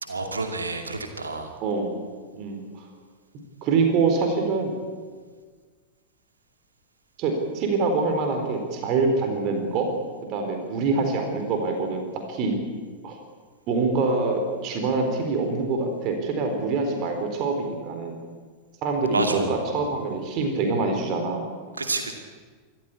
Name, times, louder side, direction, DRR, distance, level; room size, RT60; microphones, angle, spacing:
voice 1, 0.0-1.6 19.1-19.6 21.8-22.1, right 3 dB, 75° right, 4 dB, 2.5 m, -28 dB
voice 2, 1.6-2.0 2.3-2.8 3.6-4.7 7.2-9.9 10.3-12.6 13.0-13.2 13.7-18.2 18.8-21.4, right 3 dB, 40° right, 4 dB, 4.1 m, -25 dB
26.0 x 14.5 x 8.5 m, 1.6 s
figure-of-eight pair, 90°, 0 cm